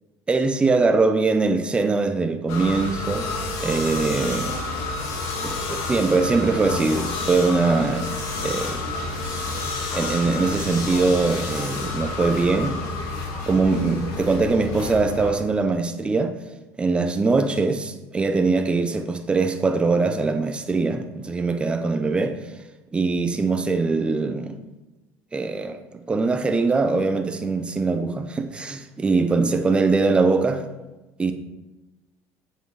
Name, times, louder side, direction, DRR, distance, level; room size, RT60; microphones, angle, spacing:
voice 1, 0.3-3.3 3.6-4.6 5.4-8.0 8.4-8.8 9.9-12.8 13.5-16.3 16.8-22.4 22.9-24.5 25.3-25.8 26.1-30.6 31.2-31.3, right 3 dB, 15° right, 0.7 m, -22 dB
sound 1, 2.5-15.3, left 3 dB, 65° left, 2.3 m, -29 dB
8.1 x 8.0 x 4.7 m
cardioid pair, 155°, 7 cm